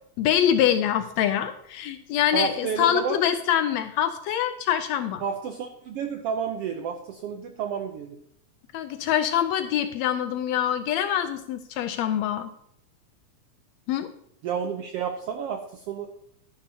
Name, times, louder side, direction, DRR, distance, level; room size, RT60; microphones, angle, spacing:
voice 1, 0.2-5.2 8.7-12.5 13.9-14.1, left 10 dB, 80° left, 10 dB, 1.6 m, -25 dB
voice 2, 2.3-3.2 5.2-8.2 14.4-16.1, right 6 dB, 80° right, 5 dB, 1.4 m, -30 dB
12.0 x 10.5 x 2.8 m, 0.70 s
omnidirectional pair, 3.5 m